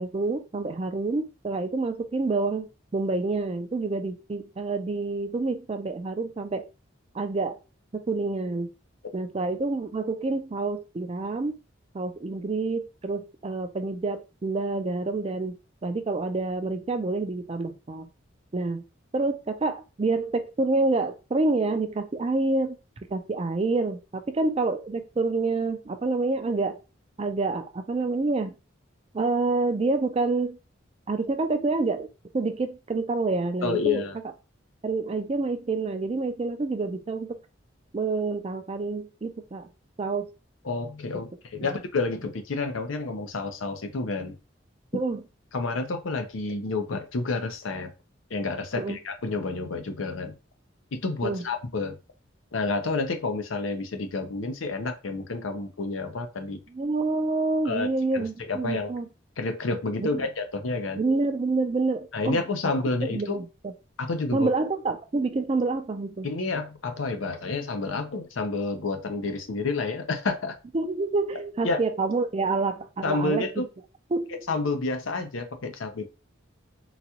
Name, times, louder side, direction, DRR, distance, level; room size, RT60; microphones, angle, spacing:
voice 1, 0.0-6.7 7.1-7.6 7.9-8.7 9.1-11.6 11.9-15.6 15.8-18.1 18.5-18.8 19.1-22.8 23.1-26.8 27.2-28.5 29.1-30.6 31.1-32.1 32.3-34.0 34.8-37.4 37.9-39.7 40.0-40.3 41.7-41.8 44.9-45.2 48.8-49.0 51.2-51.4 56.7-59.1 60.0-60.3 60.9-62.4 63.1-63.7 64.3-66.3 70.7-73.7 74.1-74.3, right 3 dB, 30° right, 7 dB, 0.4 m, -27 dB
voice 2, 33.6-34.2 40.6-44.4 45.5-47.9 48.3-50.4 50.9-52.0 52.5-56.6 57.6-57.9 58.1-58.9 59.4-61.0 62.1-63.4 64.0-64.5 66.2-70.6 71.6-71.8 73.0-73.6 74.5-76.1, left 3 dB, 85° left, 6 dB, 0.6 m, -29 dB
3.9 x 2.3 x 2.8 m, 0.29 s
head